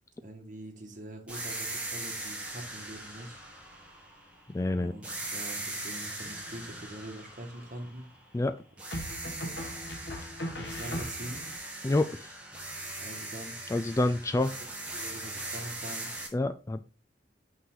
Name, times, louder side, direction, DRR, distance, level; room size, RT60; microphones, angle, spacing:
voice 1, 0.2-3.4 4.8-8.1 9.0-9.7 10.6-11.4 13.0-13.5 14.9-16.1, right 1 dB, 45° right, 1.7 m, -44 dB
sound 1, 1.3-4.6 5.0-8.4 8.8-16.3, right 2 dB, 5° right, 1.9 m, -40 dB
voice 2, 4.5-4.9 8.3-8.5 11.8-12.3 13.7-14.5 16.3-16.8, left 2 dB, 15° left, 0.3 m, -28 dB
sound 2, 6.2-6.8 8.9-11.6, equal, 65° left, 1.6 m, -39 dB
5.7 x 5.7 x 3.8 m
head